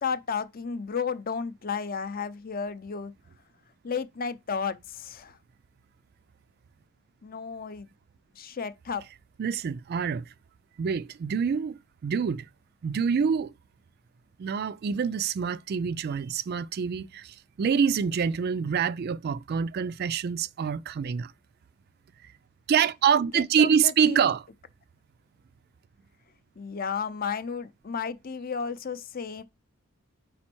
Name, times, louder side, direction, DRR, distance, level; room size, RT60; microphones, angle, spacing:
voice 1, 0.0-3.1 3.8-5.4 7.2-7.9 8.3-9.0 23.3-24.3 26.6-29.4, left 6 dB, 45° left, 0.5 m, -33 dB
voice 2, 9.4-10.2 10.8-12.5 12.8-13.5 14.4-21.3 22.7-24.4, right 7 dB, 50° right, 0.3 m, -26 dB
5.2 x 4.3 x 4.4 m
head